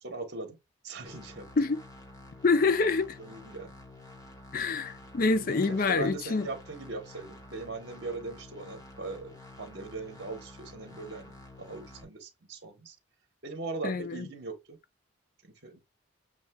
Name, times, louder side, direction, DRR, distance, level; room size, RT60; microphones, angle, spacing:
voice 1, 0.0-0.6 0.8-1.5 3.2-3.7 5.2-11.3 11.6-13.0 13.4-14.8 15.6-15.8, right 3 dB, 50° right, 1.0 m, -40 dB
sound 1, 1.0-12.0, left 2 dB, 15° left, 0.8 m, -50 dB
voice 2, 2.4-3.2 4.5-6.5 13.8-14.3, left 4 dB, 40° left, 0.4 m, -26 dB
7.0 x 2.4 x 2.2 m
head